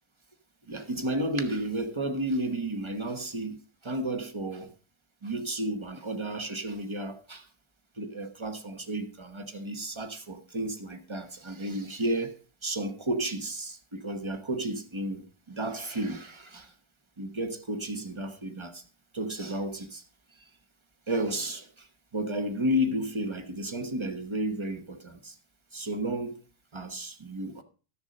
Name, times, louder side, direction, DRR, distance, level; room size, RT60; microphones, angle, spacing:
voice 1, 0.7-3.6 3.8-4.7 5.2-7.5 8.0-16.7 17.2-18.8 19.1-20.0 21.1-21.9 22.1-25.4 25.7-26.3 26.7-27.6, right 1 dB, 20° right, 0.9 m, -32 dB
12.5 x 7.1 x 5.2 m
omnidirectional pair, 2.1 m